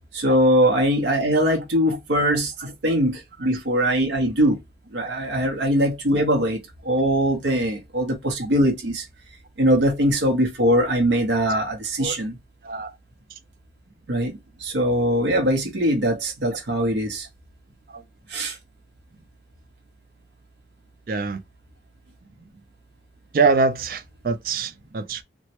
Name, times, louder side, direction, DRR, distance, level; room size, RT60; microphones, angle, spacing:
voice 1, 0.1-4.6 4.9-6.6 6.8-9.0 9.6-12.4 14.1-17.3 18.3-18.6, equal, 85° right, 0.8 m, -21 dB
voice 2, 2.3-2.7 3.4-3.5 5.0-5.1 10.0-10.1 12.0-12.2 12.6-12.9 17.9-18.0 21.1-21.4 23.3-25.2, right 4 dB, 50° right, 0.4 m, -25 dB
3.1 x 2.1 x 2.8 m
head